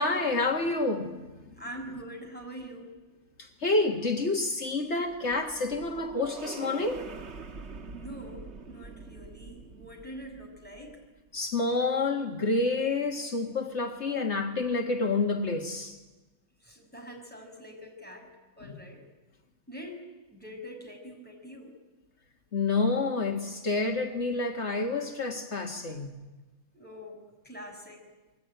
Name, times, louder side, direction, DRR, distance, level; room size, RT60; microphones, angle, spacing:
voice 1, 0.0-1.3 3.4-7.1 11.3-16.0 18.6-18.7 22.5-26.1, left 3 dB, 70° left, 2.0 m, -28 dB
voice 2, 1.6-2.9 7.9-11.0 16.6-18.3 18.6-19.0 19.7-20.0 20.3-21.7 26.7-28.0, equal, 10° left, 5.9 m, -44 dB
sound 1, 4.7-11.2, right 4 dB, 70° right, 1.6 m, -44 dB
28.0 x 22.0 x 9.2 m
omnidirectional pair, 1.2 m